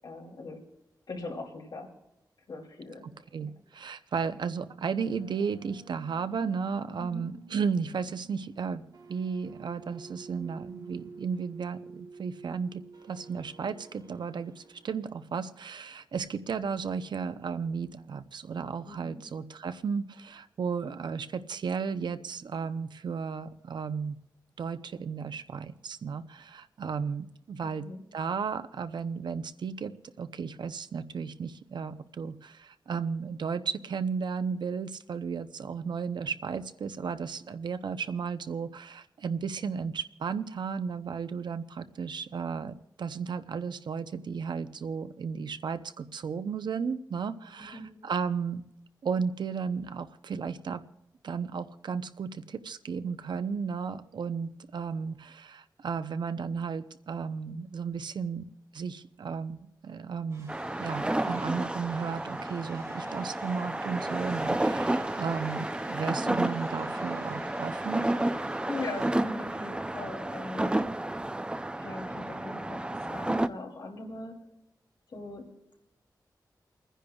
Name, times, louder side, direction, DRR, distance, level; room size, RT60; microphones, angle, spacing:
voice 1, 0.0-0.6 1.1-1.9 2.5-3.0 3.4-3.5 7.0-7.2 18.8-19.2 27.6-28.0 47.6-47.9 68.7-70.8 71.8-74.4 75.1-75.4, left 2 dB, 75° left, 0 dB, 2.9 m, -40 dB
voice 2, 3.3-8.8 9.1-24.2 24.6-27.8 28.1-48.6 49.0-50.8 51.2-58.4 58.7-60.5 60.8-68.1, right 6 dB, 85° right, 11 dB, 0.7 m, -34 dB
sound 1, 4.2-15.1, right 5 dB, 65° right, 1.3 m, -51 dB
sound 2, 60.3-69.1, right 1 dB, 40° right, 6.2 m, -51 dB
sound 3, 60.5-73.5, right 1 dB, 15° right, 0.5 m, -31 dB
30.0 x 10.0 x 2.3 m, 0.86 s
wide cardioid pair, 110°, 7 cm